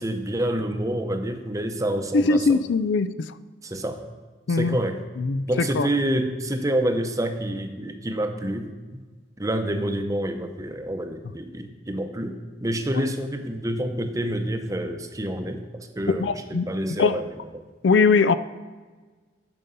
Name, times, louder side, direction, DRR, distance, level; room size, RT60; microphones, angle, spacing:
voice 1, 0.0-2.6 3.6-4.0 4.5-5.0 5.4-9.0 9.4-17.6, right 1 dB, 20° right, 6 dB, 0.7 m, -28 dB
voice 2, 2.1-3.3 4.5-4.8 5.2-5.9 16.2-16.7 17.0-17.2 17.8-18.4, left 4 dB, 70° left, 14 dB, 0.4 m, -21 dB
11.0 x 5.3 x 6.9 m, 1.4 s
head